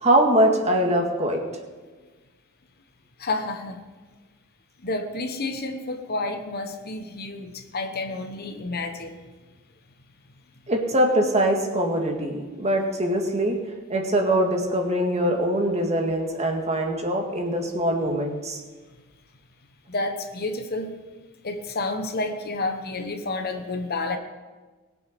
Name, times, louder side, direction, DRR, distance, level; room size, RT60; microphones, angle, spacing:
voice 1, 0.0-1.4 10.7-13.6 13.9-18.6, right 1 dB, 30° right, 2 dB, 1.9 m, -23 dB
voice 2, 3.2-3.8 4.8-9.2 19.9-20.9 21.4-24.2, left 2 dB, 45° left, 6 dB, 1.1 m, -30 dB
20.5 x 8.1 x 5.2 m, 1.3 s
head